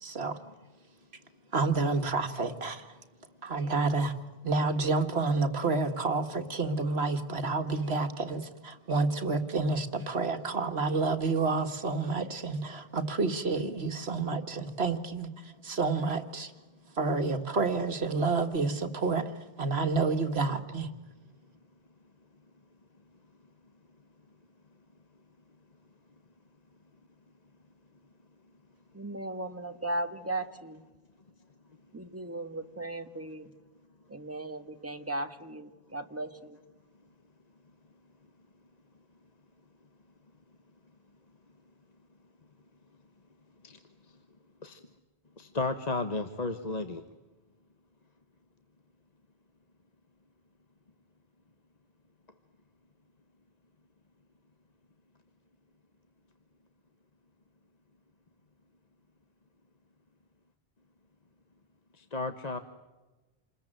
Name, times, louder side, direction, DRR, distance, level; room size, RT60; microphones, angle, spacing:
voice 1, 0.0-0.4 1.5-3.0 3.4-4.2 4.4-16.5 17.0-19.3 19.6-20.9, right 3 dB, 75° right, 2.0 m, -29 dB
voice 2, 28.9-30.8 31.9-33.5 34.1-36.6, right 2 dB, 15° right, 1.4 m, -37 dB
voice 3, 45.4-47.0 62.1-62.6, left 3 dB, 40° left, 1.3 m, -33 dB
28.0 x 21.0 x 9.0 m
omnidirectional pair, 1.1 m